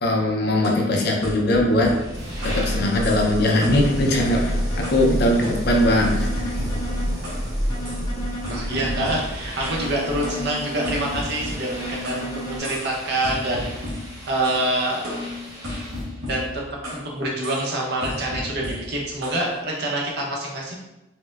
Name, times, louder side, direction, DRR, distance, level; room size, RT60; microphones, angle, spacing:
voice 1, 0.0-2.0 2.4-6.6, left 1 dB, 50° left, 0 dB, 0.5 m, -21 dB
sound 1, 0.6-2.7 3.0-3.3 3.6-5.1 5.4-7.5 7.8-8.1 8.4-9.9 10.2-12.3 12.6-13.0 13.2-14.7 15.0-17.1 17.4-17.7 18.0-19.4, left 1 dB, 80° right, 1.0 m, -34 dB
sound 2, 1.6-16.2, equal, 15° right, 0.6 m, -30 dB
sound 3, 2.4-3.2 3.7-5.2 5.7-7.2 7.7-9.2 9.7-11.2 11.7-12.6, right 1 dB, 15° left, 0.8 m, -34 dB
voice 2, 8.5-13.7 14.3-15.2 16.2-16.6 16.9-20.7, right 1 dB, 50° right, -3 dB, 0.7 m, -26 dB
4.2 x 2.1 x 2.3 m, 0.97 s
head